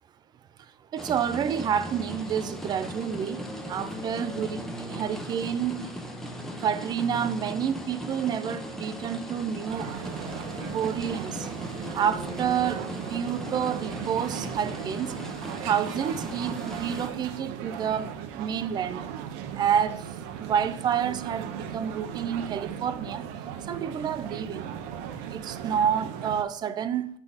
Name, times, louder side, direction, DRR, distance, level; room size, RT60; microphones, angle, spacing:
voice 1, 0.9-4.6 4.9-5.8 6.6-9.9 10.7-11.5 11.9-12.8 13.1-15.1 15.6-19.1 19.6-20.1 20.4-23.3 23.7-24.7 25.3-27.1, right 8 dB, 25° right, 12 dB, 0.4 m, -29 dB
sound 1, 1.0-17.1, equal, ahead, 0.7 m, -38 dB
sound 2, 9.7-26.4, right 8 dB, 65° right, 0.8 m, -37 dB
8.0 x 5.8 x 4.0 m, 0.68 s
cardioid pair, 155°, 17 cm